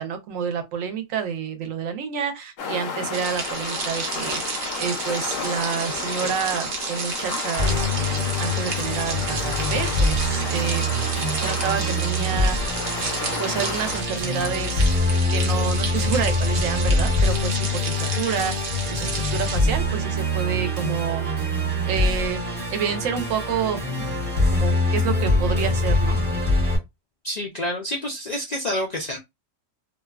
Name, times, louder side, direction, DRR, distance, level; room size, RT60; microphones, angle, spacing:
voice 1, 0.0-4.4 4.8-10.8 11.4-12.6 13.4-14.9 15.3-18.5 18.9-21.3 21.9-22.4 22.7-23.8 24.5-26.2, right 7 dB, 90° right, 1.0 m, -28 dB
sound 1, 2.6-14.0, left 5 dB, 85° left, 1.0 m, -33 dB
sound 2, 3.1-19.6, right 4 dB, 65° right, 1.0 m, -32 dB
Musical instrument, 7.6-26.8, left 1 dB, 45° right, 1.1 m, -24 dB
voice 2, 27.2-29.2, left 1 dB, 65° left, 0.4 m, -28 dB
2.7 x 2.2 x 2.3 m
omnidirectional pair, 1.3 m